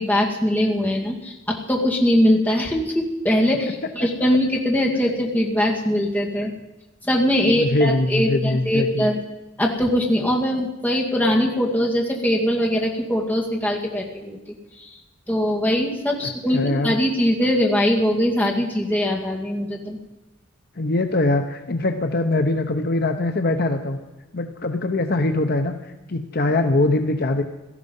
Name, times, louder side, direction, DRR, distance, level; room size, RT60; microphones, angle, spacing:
voice 1, 0.0-6.5 7.0-9.2 9.6-14.4 14.8-14.9 15.3-20.0, equal, 10° left, -1 dB, 2.2 m, -21 dB
voice 2, 7.4-9.1 16.2-17.0 20.8-24.0 24.3-27.4, left 2 dB, 50° left, 7 dB, 0.9 m, -22 dB
17.0 x 13.5 x 5.5 m, 1.1 s
head